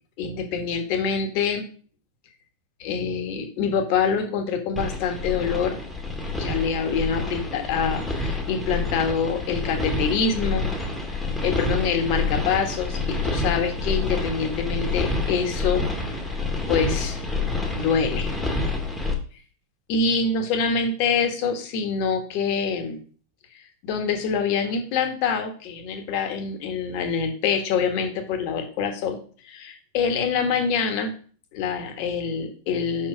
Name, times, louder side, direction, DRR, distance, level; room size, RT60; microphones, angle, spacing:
voice 1, 0.2-1.7 2.8-5.8 6.3-10.7 11.4-16.1 16.7-17.2 17.7-18.3 19.9-23.0 23.8-29.2 29.5-31.1 31.5-33.1, left 5 dB, 45° left, 5 dB, 1.6 m, -25 dB
sound 1, 4.8-19.1, left 3 dB, 5° left, 1.7 m, -28 dB
6.0 x 4.6 x 5.2 m, 0.42 s
figure-of-eight pair, 90°, 0 cm